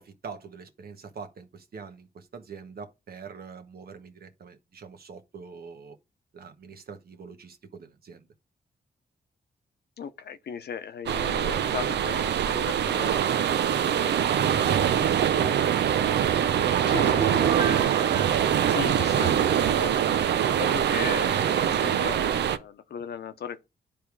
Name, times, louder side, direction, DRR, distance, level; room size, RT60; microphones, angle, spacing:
voice 1, 0.0-6.0 6.3-8.3 15.3-16.0, right 5 dB, 65° right, 1.4 m, -44 dB
voice 2, 10.0-14.3 14.7-14.9 16.8-17.4 18.7-23.7, left 7 dB, 75° left, 0.9 m, -38 dB
sound 1, 11.1-22.6, right 9 dB, 90° right, 0.6 m, -24 dB
Piano, 17.2-19.9 20.3-20.4, right 7 dB, 30° right, 1.1 m, -32 dB
10.0 x 3.5 x 4.7 m
cardioid pair, 95°, 17 cm